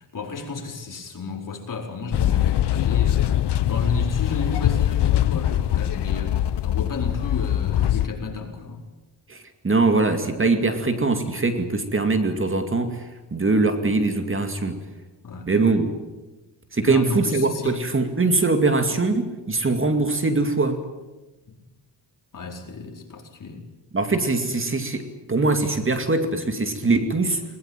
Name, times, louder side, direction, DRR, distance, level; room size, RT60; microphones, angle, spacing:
voice 1, 0.0-3.4 3.7-8.8 15.2-15.5 16.8-17.8 21.5-21.6 22.3-23.6, left 3 dB, 50° left, 2 dB, 4.8 m, -32 dB
sound 1, 2.1-8.1, left 12 dB, 75° left, 1.0 m, -22 dB
voice 2, 9.3-13.0 13.3-14.8 15.5-16.0 16.7-20.8 23.9-27.4, right 3 dB, 30° right, 7 dB, 2.4 m, -22 dB
21.0 x 20.5 x 9.1 m, 1.1 s
cardioid pair, 95°, 41 cm